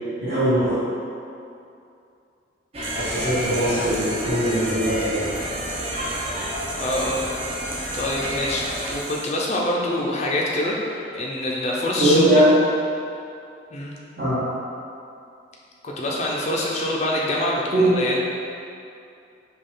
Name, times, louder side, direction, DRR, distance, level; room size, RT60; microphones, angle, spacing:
voice 1, 0.2-0.8 3.0-5.3 11.9-12.5 14.2-14.4 17.7-17.9, right 1 dB, 50° right, -13 dB, 1.1 m, -20 dB
sound 1, 2.7-8.9, equal, 30° right, 0.6 m, -30 dB
sound 2, 2.8-9.3, right 3 dB, 80° right, 0.7 m, -36 dB
voice 2, 6.8-7.2 7.9-12.2 13.7-13.9 15.8-18.2, left 1 dB, 35° left, -3 dB, 0.5 m, -25 dB
5.3 x 2.3 x 3.7 m, 2.6 s
head